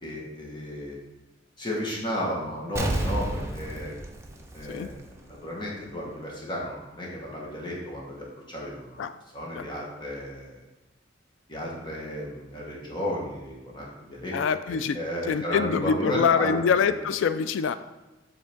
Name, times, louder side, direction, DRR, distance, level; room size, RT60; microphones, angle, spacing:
voice 1, 0.0-1.0 1.6-3.9 4.5-9.0 9.3-10.6 11.5-14.3 14.6-16.9, equal, 25° left, -4 dB, 1.3 m, -33 dB
Explosion, 2.8-5.4 5.7-5.8, right 1 dB, 15° right, 0.6 m, -31 dB
voice 2, 14.3-15.0 15.3-17.8, left 6 dB, 80° left, 13 dB, 0.3 m, -25 dB
7.6 x 3.7 x 3.5 m, 1.1 s
head